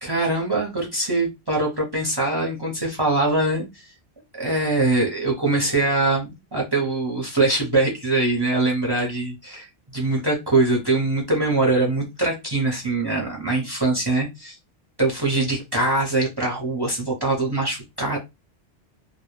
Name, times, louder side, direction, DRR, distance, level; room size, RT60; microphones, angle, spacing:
voice 1, 0.0-3.9 4.3-9.7 9.9-14.3 15.0-18.2, right 2 dB, 30° right, 0 dB, 0.6 m, -23 dB
2.2 x 2.1 x 3.0 m, 0.22 s
omnidirectional pair, 1.1 m